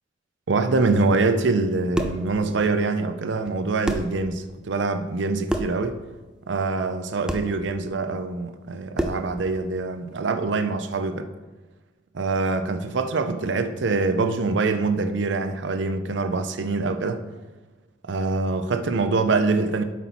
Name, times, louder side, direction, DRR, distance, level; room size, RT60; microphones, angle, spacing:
voice 1, 0.5-6.0 6.5-11.3 12.1-17.2 18.0-19.8, right 3 dB, 65° right, 9 dB, 0.5 m, -24 dB
sound 1, 1.7-2.3 3.5-3.6 3.9-4.2 5.5-5.8 7.3-7.5 9.0-9.3, right 1 dB, 5° right, 0.4 m, -27 dB
8.1 x 6.0 x 4.2 m, 1.2 s
head